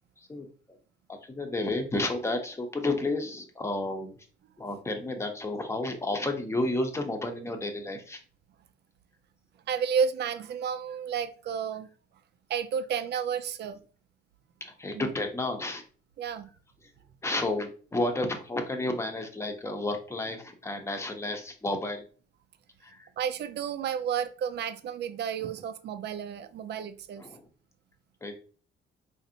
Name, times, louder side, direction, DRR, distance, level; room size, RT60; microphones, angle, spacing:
voice 1, 1.1-4.2 4.6-8.2 10.3-10.4 14.6-15.8 16.8-16.9 17.2-22.0 22.8-23.1 24.5-24.6 27.2-27.5 28.2-28.3, left 2 dB, 15° left, 0.8 m, -31 dB
voice 2, 9.7-11.9 12.5-13.8 14.9-15.1 16.2-16.5 23.2-27.2, right 7 dB, 60° right, 0.5 m, -31 dB
4.0 x 2.6 x 2.7 m
cardioid pair, 90°, 20 cm